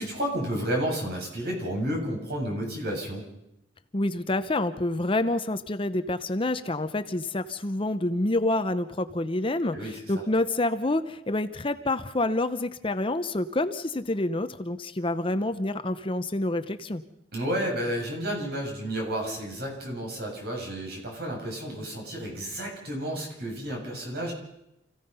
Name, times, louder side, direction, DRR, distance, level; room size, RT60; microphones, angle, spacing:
voice 1, 0.0-3.2 9.7-10.1 17.3-24.3, right 1 dB, 55° right, 0 dB, 7.6 m, -31 dB
voice 2, 3.9-17.0, left 2 dB, 30° left, 10 dB, 0.8 m, -28 dB
28.5 x 16.5 x 5.6 m, 0.86 s
head